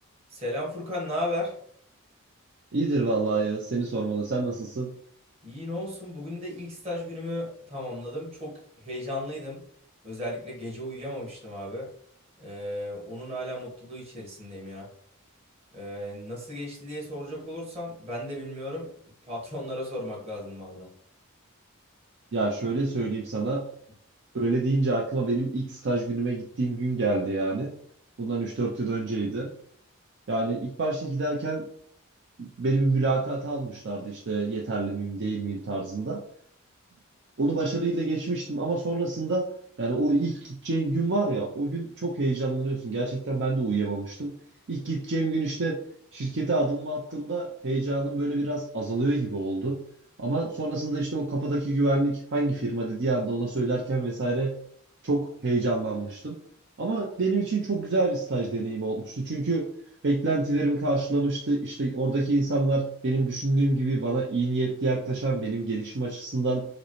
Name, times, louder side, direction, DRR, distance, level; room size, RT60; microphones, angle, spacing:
voice 1, 0.3-1.5 5.4-9.6 10.0-11.9 12.4-14.9 15.7-18.9 19.3-20.9, left 1 dB, 30° right, -4 dB, 1.4 m, -35 dB
voice 2, 2.7-4.9 22.3-23.6 24.3-27.7 28.2-29.5 30.3-31.7 32.4-36.2 37.4-39.5 39.8-44.3 44.7-45.8 46.1-49.8 50.2-54.5 55.0-56.4 56.8-59.7 60.0-66.7, right 2 dB, 55° right, -2 dB, 0.5 m, -27 dB
5.1 x 2.1 x 3.1 m, 0.64 s
head